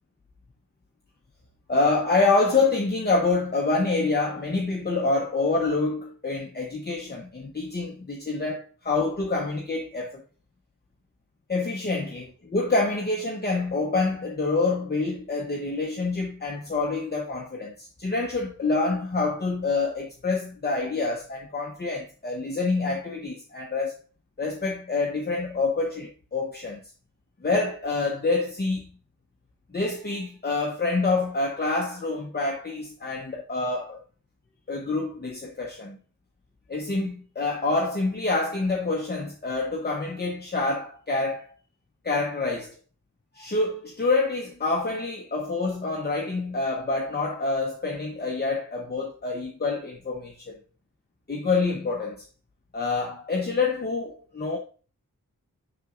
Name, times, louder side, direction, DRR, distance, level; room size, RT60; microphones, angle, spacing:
voice 1, 1.7-10.2 11.5-24.0 24.4-26.9 27.4-28.9 29.7-34.0 34.7-36.0 36.7-41.5 42.0-42.8 43.3-50.5 51.3-52.2 52.7-54.6, left 3 dB, 30° left, 0.8 m, -27 dB
6.6 x 5.9 x 2.5 m
wide cardioid pair, 105°, 33 cm